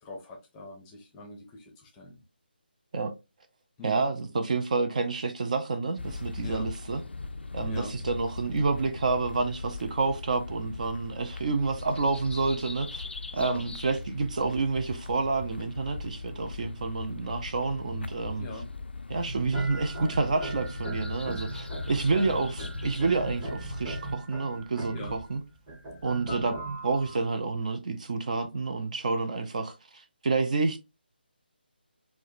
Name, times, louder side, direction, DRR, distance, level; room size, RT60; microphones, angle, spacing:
voice 1, 0.0-2.2 3.8-4.0 6.4-6.7 7.6-7.9 13.3-13.6 18.4-18.6 21.1-21.3 24.9-25.2, left 1 dB, 15° left, 0.6 m, -42 dB
voice 2, 3.8-7.0 7.5-13.0 13.3-18.5 19.1-25.4 26.0-26.6 26.8-30.8, right 3 dB, 45° right, 0.5 m, -29 dB
sound 1, 6.0-24.2, left 3 dB, 75° left, 0.3 m, -39 dB
sound 2, 19.1-27.2, right 2 dB, 15° right, 1.0 m, -39 dB
4.5 x 2.1 x 2.5 m
figure-of-eight pair, 155°, 6 cm